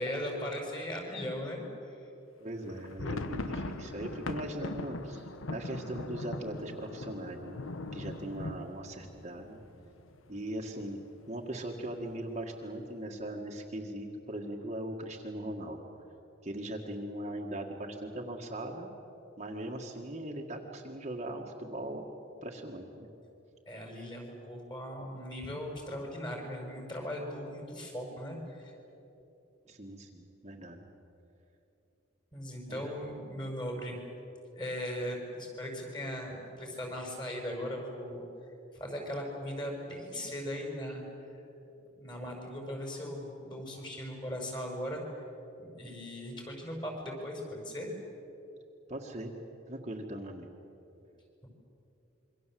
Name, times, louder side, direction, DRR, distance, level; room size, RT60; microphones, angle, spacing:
voice 1, 0.0-2.0 23.6-28.7 32.3-34.0 34.5-38.2 38.7-41.0 41.9-45.2 45.6-47.9, equal, 20° left, 1 dB, 5.8 m, -38 dB
voice 2, 2.4-7.6 7.9-9.6 10.3-11.0 11.3-15.8 16.4-18.9 19.4-22.0 22.4-23.1 29.7-30.9 32.7-32.9 48.9-49.3 49.7-50.5, right 1 dB, 35° right, 1 dB, 1.8 m, -40 dB
sound 1, 2.6-10.4 10.7-10.8 11.1-11.3 11.8-12.3, left 2 dB, 85° left, 1.2 m, -40 dB
27.0 x 24.0 x 7.7 m, 3.0 s
head